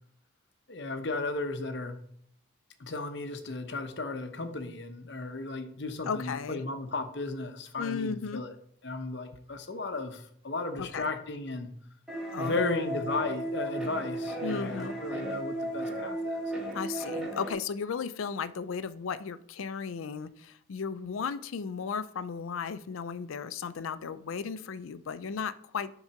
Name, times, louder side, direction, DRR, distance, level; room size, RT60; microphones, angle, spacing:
voice 1, 0.7-2.0 2.8-8.5 8.8-11.7 12.4-16.5, left 3 dB, 60° left, 8 dB, 0.8 m, -35 dB
voice 2, 6.1-6.6 7.8-8.4 10.8-11.1 12.3-13.0 14.4-15.0 16.7-25.9, left 6 dB, 90° left, 14 dB, 0.4 m, -35 dB
sound 1, 12.1-17.5, right 1 dB, 5° right, 1.3 m, -34 dB
7.2 x 3.8 x 5.8 m, 0.65 s
head